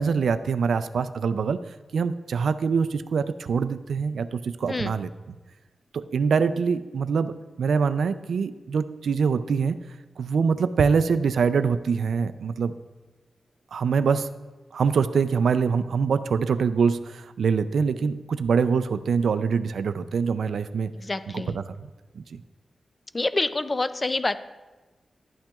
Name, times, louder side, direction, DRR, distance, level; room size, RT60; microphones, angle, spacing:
voice 1, 0.0-1.6 1.9-5.1 5.9-9.8 10.2-12.8 13.7-14.3 14.7-20.9 21.5-21.8 22.2-22.4, right 5 dB, 90° right, 12 dB, 0.3 m, -24 dB
voice 2, 21.0-21.6 23.1-24.4, left 2 dB, 25° left, 13 dB, 0.3 m, -27 dB
11.5 x 8.7 x 2.3 m, 1.2 s
wide cardioid pair, 130°, 0 cm